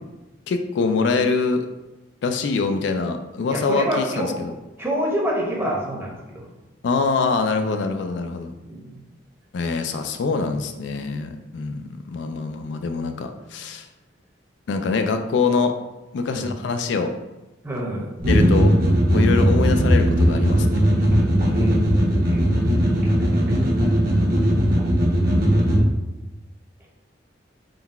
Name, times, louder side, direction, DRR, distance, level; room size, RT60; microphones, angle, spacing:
voice 1, 0.5-1.7 2.2-4.5 6.8-8.5 9.5-13.8 14.7-15.7 16.1-17.1 18.3-18.7 19.1-20.8, left 4 dB, 70° left, 7 dB, 0.3 m, -24 dB
voice 2, 3.5-4.3 4.8-6.4 8.6-9.0 16.3-16.5 17.6-18.5 21.5-21.7 22.2-22.4, equal, 15° right, -3 dB, 0.8 m, -27 dB
sound 1, 18.2-25.8, equal, 55° right, 1.0 m, -18 dB
3.8 x 2.3 x 4.1 m, 1.0 s
head